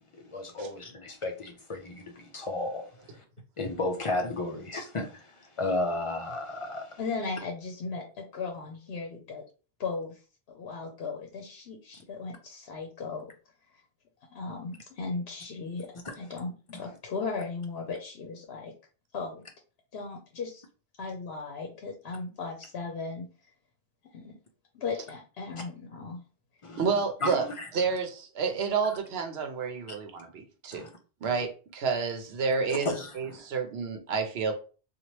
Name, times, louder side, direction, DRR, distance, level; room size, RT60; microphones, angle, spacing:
voice 1, 0.3-3.2 3.6-7.0 16.0-16.1 26.6-26.8 27.2-27.7 29.9-30.0 30.7-30.9 31.2-31.3 32.7-33.4, left 2 dB, 50° left, 0.4 m, -33 dB
voice 2, 7.0-9.4 9.8-10.2 10.5-13.3 14.3-18.7 19.1-19.4 19.9-20.6 21.0-23.3 24.1-24.4 24.7-26.2 33.4-33.5, left 4 dB, 75° left, 0.8 m, -37 dB
voice 3, 26.8-27.5 27.7-30.8 31.2-34.5, right 5 dB, 80° right, 0.9 m, -30 dB
2.9 x 2.4 x 3.0 m
omnidirectional pair, 1.0 m